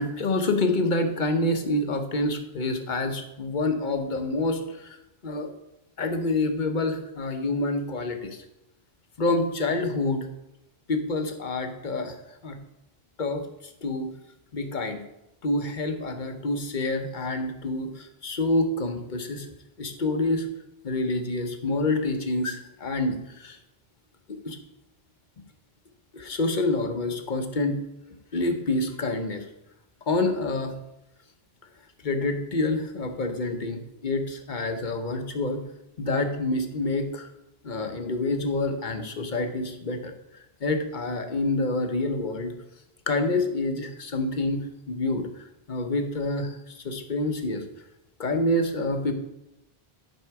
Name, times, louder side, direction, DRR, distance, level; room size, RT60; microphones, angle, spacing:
voice 1, 0.0-5.0 5.2-5.5 6.0-8.4 9.2-10.3 10.9-12.1 12.4-12.6 13.2-13.4 13.8-14.1 14.5-15.0 15.4-19.5 19.8-20.5 20.8-23.6 24.3-24.6 26.1-27.8 28.3-29.4 30.1-30.7 32.0-35.6 36.0-37.3 37.6-40.1 40.6-42.5 43.1-44.6 44.9-45.3 45.7-47.6 48.2-49.1, left 2 dB, 50° left, 6 dB, 1.1 m, -27 dB
11.0 x 5.4 x 4.7 m, 0.89 s
omnidirectional pair, 1.0 m